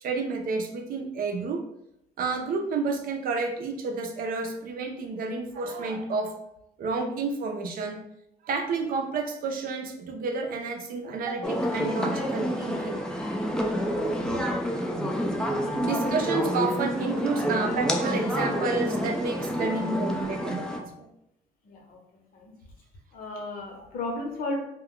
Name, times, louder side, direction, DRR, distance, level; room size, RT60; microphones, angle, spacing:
voice 1, 0.0-1.6 2.2-6.3 6.8-8.0 8.4-13.0 15.8-21.1 23.8-23.9, right 4 dB, 60° right, 2 dB, 0.5 m, -30 dB
sound 1, 11.4-20.8, equal, 5° left, 0.4 m, -28 dB
voice 2, 14.6-14.9 15.6-16.2 21.7-22.0 22.3-22.5 23.1-24.6, left 2 dB, 55° left, 0 dB, 0.9 m, -35 dB
2.2 x 2.2 x 3.7 m, 0.82 s
cardioid pair, 110°, 17 cm